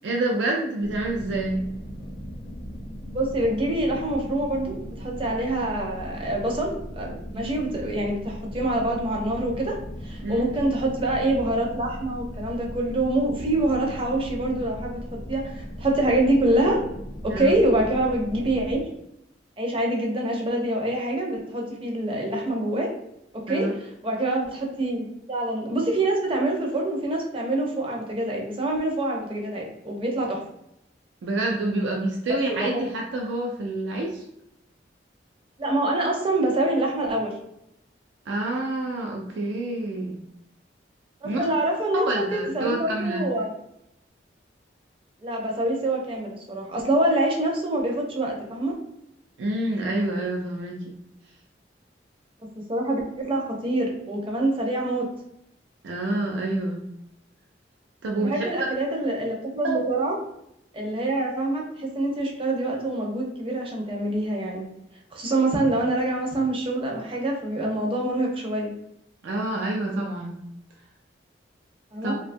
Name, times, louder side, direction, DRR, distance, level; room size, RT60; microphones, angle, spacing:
voice 1, 0.0-1.6 7.3-7.5 10.2-10.5 17.3-17.5 23.5-23.8 31.2-34.2 38.3-40.2 41.2-41.4 41.9-43.3 49.4-50.8 55.8-56.8 58.0-58.4 59.6-59.8 69.2-70.3 72.0-72.1, right 2 dB, 80° right, 0 dB, 0.4 m, -27 dB
sound 1, 0.8-18.8, equal, 45° left, 0.6 m, -38 dB
voice 2, 3.1-9.8 10.0-15.0 15.3-16.8 17.2-18.9 19.6-22.9 23.3-30.4 32.5-32.9 35.6-37.3 41.2-43.5 45.2-48.8 52.7-55.1 58.2-60.2 60.7-64.7 65.1-68.7 71.9-72.1, right 1 dB, 30° right, -1 dB, 0.5 m, -25 dB
2.6 x 2.2 x 2.5 m, 0.81 s
head